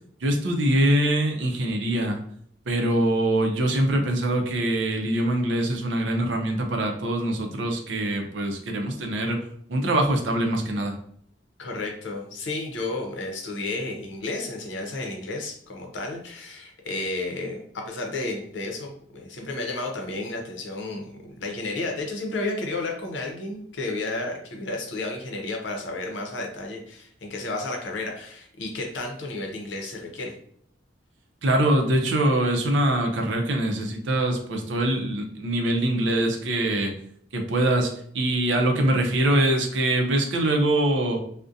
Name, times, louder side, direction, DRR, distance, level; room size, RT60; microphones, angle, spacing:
voice 1, 0.2-2.2 2.7-10.9 31.4-36.9 37.3-41.2, right 1 dB, 80° right, 3 dB, 0.5 m, -23 dB
voice 2, 11.6-30.3, left 2 dB, 85° left, 2 dB, 0.6 m, -32 dB
2.4 x 2.1 x 2.6 m, 0.64 s
head